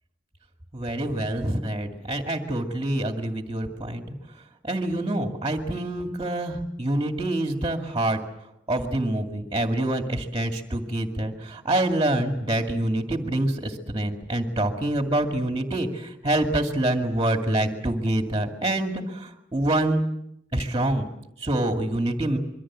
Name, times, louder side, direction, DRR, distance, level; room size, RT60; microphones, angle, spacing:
voice 1, 0.7-4.1 4.7-8.2 8.7-20.0 20.5-21.1 21.4-22.4, right 1 dB, 25° right, 4 dB, 2.3 m, -26 dB
26.0 x 23.5 x 7.5 m, 0.81 s
head